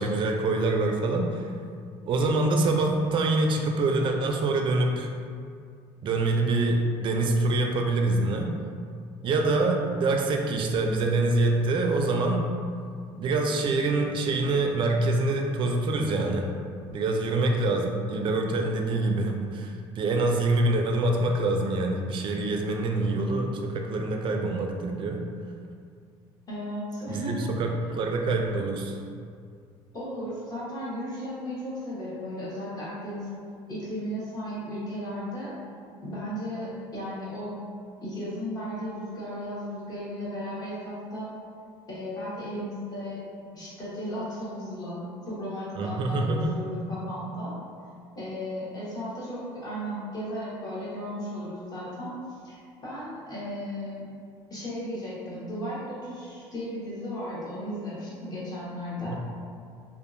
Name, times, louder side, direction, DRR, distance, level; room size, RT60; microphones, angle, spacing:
voice 1, 0.0-1.5 2.1-5.1 6.0-8.5 9.2-12.5 13.2-16.6 16.9-25.2 27.1-29.0 45.8-46.5 59.0-59.2, right 2 dB, 45° right, 2 dB, 0.4 m, -25 dB
voice 2, 26.5-27.5 29.9-33.3 33.7-35.5 36.0-37.6 38.0-41.3 41.9-43.2 43.5-47.5 48.1-52.1 52.4-54.1 54.5-59.2, equal, 35° left, -9 dB, 1.1 m, -35 dB
2.6 x 2.4 x 2.5 m, 2.2 s
supercardioid pair, 100°, 11 cm